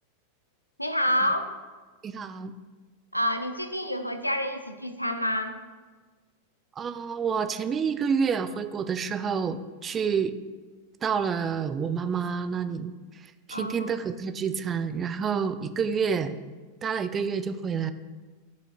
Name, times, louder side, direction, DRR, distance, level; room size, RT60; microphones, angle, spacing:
voice 1, 0.8-1.6 3.1-5.5 13.5-13.9, equal, 90° left, 8 dB, 0.5 m, -28 dB
voice 2, 2.0-2.5 6.8-10.3 11.0-12.9 13.5-16.4 16.8-17.9, right 6 dB, 25° right, 11 dB, 0.4 m, -28 dB
11.5 x 4.2 x 2.5 m, 1.3 s
figure-of-eight pair, 90°, 0 cm